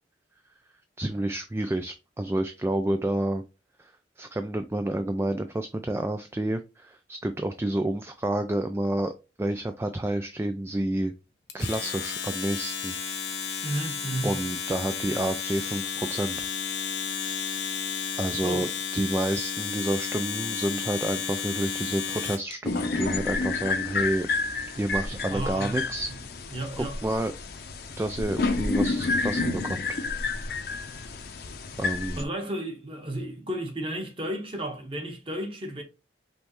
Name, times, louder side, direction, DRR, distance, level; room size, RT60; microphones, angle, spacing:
voice 1, 1.0-3.4 3.8-11.1 11.5-12.9 14.2-16.5 18.1-24.3 24.8-26.1 26.8-27.3 28.0-29.9 30.5-31.1 31.8-32.2, right 1 dB, 15° right, 0.3 m, -29 dB
Domestic sounds home sounds, 11.5-22.5, left 7 dB, 75° left, 1.2 m, -32 dB
voice 2, 13.6-14.4 18.4-18.6 25.3-25.9 26.5-27.0 32.2-35.8, right 1 dB, 30° right, 1.2 m, -33 dB
sound 1, 22.6-32.2, left 3 dB, 55° left, 0.7 m, -30 dB
5.3 x 3.2 x 3.0 m
head